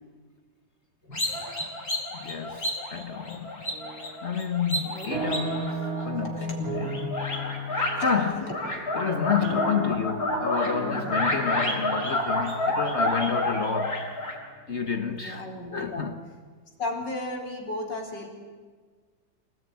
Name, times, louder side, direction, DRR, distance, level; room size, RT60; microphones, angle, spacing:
voice 1, 1.0-1.7 4.9-5.1 6.3-6.6 7.6-8.5 11.0-11.2 15.1-16.1 16.8-18.3, left 2 dB, 90° left, 4.5 m, -36 dB
sound 1, 1.1-6.4 6.7-8.2 8.5-14.4, left 1 dB, 60° left, 5.2 m, -29 dB
voice 2, 2.1-3.7 4.2-7.2 7.7-8.6 8.9-14.1 14.7-15.4 15.7-16.1, left 6 dB, 45° left, 1.3 m, -30 dB
sound 2, 3.7-4.3 4.6-14.7, right 2 dB, 55° right, 4.1 m, -36 dB
25.5 x 18.5 x 9.4 m
omnidirectional pair, 1.9 m